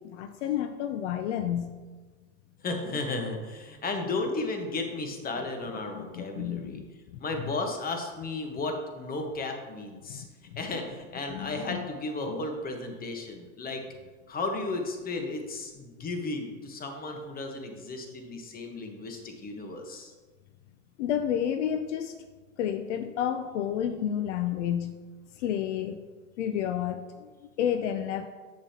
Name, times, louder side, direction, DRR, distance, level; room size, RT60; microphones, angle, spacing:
voice 1, 0.0-1.8 5.9-6.8 7.1-7.2 10.1-10.2 10.5-10.6 11.3-11.9 21.0-22.2 22.6-25.0 25.4-26.0 26.4-27.3 27.6-28.3, left 9 dB, 70° left, 9 dB, 0.6 m, -30 dB
voice 2, 2.6-6.8 7.2-10.2 10.6-13.8 14.3-20.1, left 3 dB, 25° left, 4 dB, 1.2 m, -34 dB
7.7 x 6.9 x 2.9 m, 1.4 s
hypercardioid pair, 100°, 37 cm